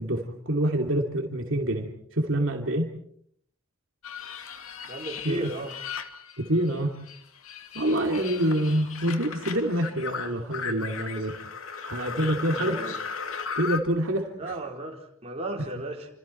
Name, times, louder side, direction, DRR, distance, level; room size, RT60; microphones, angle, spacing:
voice 1, 0.0-2.9 5.2-5.5 6.4-7.0 7.7-11.4 11.9-12.9 13.5-14.6, right 1 dB, 65° right, 2 dB, 2.7 m, -26 dB
sound 1, 4.0-6.8 7.1-13.8, left 6 dB, 80° left, 2.4 m, -37 dB
voice 2, 4.9-5.7 12.5-12.9 14.4-16.1, right 2 dB, 30° right, 0 dB, 4.5 m, -35 dB
29.0 x 27.0 x 4.5 m, 0.65 s
head